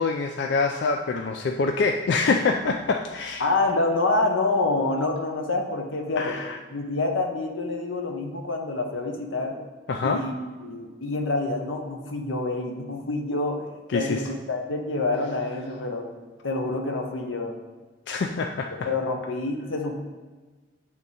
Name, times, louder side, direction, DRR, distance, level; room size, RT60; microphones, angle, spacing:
voice 1, 0.0-3.4 6.2-6.6 9.9-10.2 13.9-14.2 18.1-18.9, left 4 dB, 60° left, 4 dB, 0.3 m, -25 dB
voice 2, 3.4-6.4 6.7-9.6 10.0-13.7 13.9-16.1 16.4-17.6 18.8-19.9, left 2 dB, 90° left, 3 dB, 0.9 m, -27 dB
8.9 x 3.6 x 4.1 m, 1.3 s
head